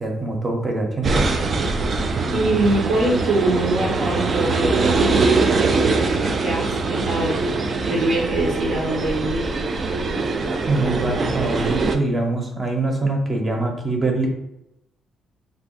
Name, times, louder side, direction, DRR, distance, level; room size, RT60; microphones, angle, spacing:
voice 1, 0.0-1.2 10.7-14.3, right 2 dB, 30° right, 1 dB, 0.8 m, -23 dB
sound 1, 1.0-12.0, right 3 dB, 45° right, 0.3 m, -22 dB
voice 2, 2.3-5.1 6.4-7.4 7.8-9.4, right 2 dB, 70° right, -2 dB, 0.9 m, -23 dB
2.5 x 2.3 x 3.9 m, 0.85 s
cardioid pair, 90°, 0 cm